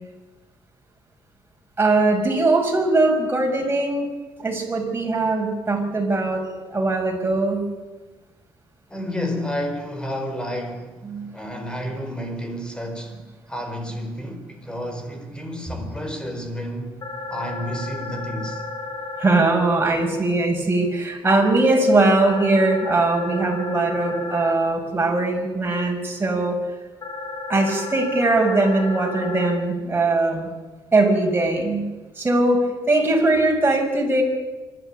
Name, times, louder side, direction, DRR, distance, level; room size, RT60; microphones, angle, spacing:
voice 1, 1.8-4.1 4.4-6.4 6.7-7.6 11.0-11.5 19.2-26.6 27.5-30.5 30.9-31.8 32.2-34.2, right 2 dB, 25° right, 6.5 m, -20 dB
voice 2, 8.9-11.0 11.3-13.2 13.5-17.0 17.3-18.6, equal, 10° left, 4.8 m, -30 dB
sound 1, 17.0-19.5 22.0-24.5 27.0-29.5, left 3 dB, 50° left, 3.1 m, -33 dB
25.5 x 12.5 x 9.3 m
cardioid pair, 85°, 9 cm